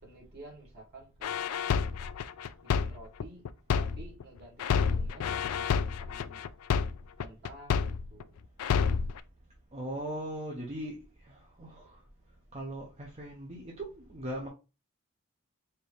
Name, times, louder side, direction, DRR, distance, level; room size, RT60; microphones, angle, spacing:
voice 1, 0.0-1.4 2.6-3.4 3.8-4.7 4.9-6.5 7.2-8.3, right 2 dB, 45° right, 1.8 m, -51 dB
sound 1, 1.2-4.2 4.6-8.2 8.6-9.2, left 6 dB, 80° left, 0.3 m, -29 dB
voice 2, 9.7-11.0 11.2-11.9 12.5-14.5, right 1 dB, 30° right, 0.7 m, -39 dB
4.4 x 2.6 x 3.4 m
head